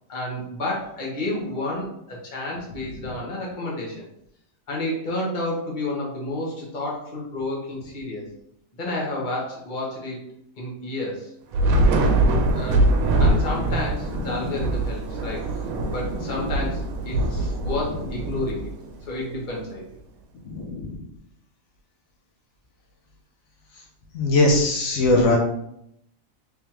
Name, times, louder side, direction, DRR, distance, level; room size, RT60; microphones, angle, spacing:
voice 1, 0.1-4.0 4.7-8.3 8.7-10.3 10.6-11.3 12.5-12.9 13.2-15.6 15.9-18.7 19.0-19.9, left 2 dB, 40° left, -3 dB, 1.1 m, -30 dB
Thunder / Rain, 11.5-19.1, right 2 dB, 90° right, 1.1 m, -23 dB
voice 2, 20.5-21.0 24.1-25.4, left 2 dB, 75° left, 0 dB, 1.1 m, -20 dB
3.6 x 3.4 x 2.9 m, 0.76 s
omnidirectional pair, 1.4 m